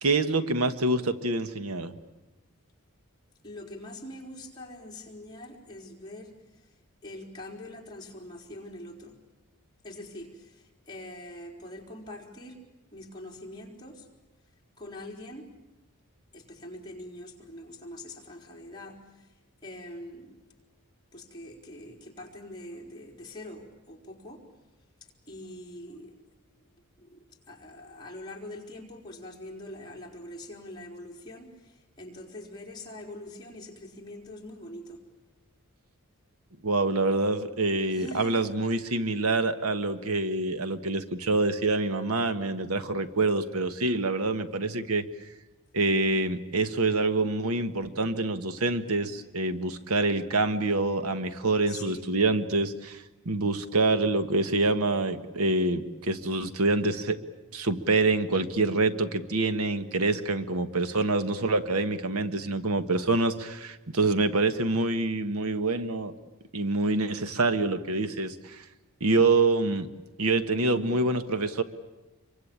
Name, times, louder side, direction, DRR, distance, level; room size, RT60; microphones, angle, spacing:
voice 1, 0.0-1.9 36.6-45.0 45.7-57.2 57.5-66.1 66.5-68.6 69.0-69.9 70.2-71.6, right 2 dB, 85° right, 10 dB, 1.4 m, -26 dB
voice 2, 3.4-6.8 7.0-9.2 9.8-12.6 12.9-14.1 14.8-15.5 16.3-20.4 21.1-24.4 25.3-26.1 26.5-26.7 27.0-35.0 37.9-38.6 51.7-52.1 70.5-71.0, left 1 dB, 20° left, -1 dB, 4.3 m, -44 dB
27.0 x 24.0 x 8.8 m, 1.1 s
head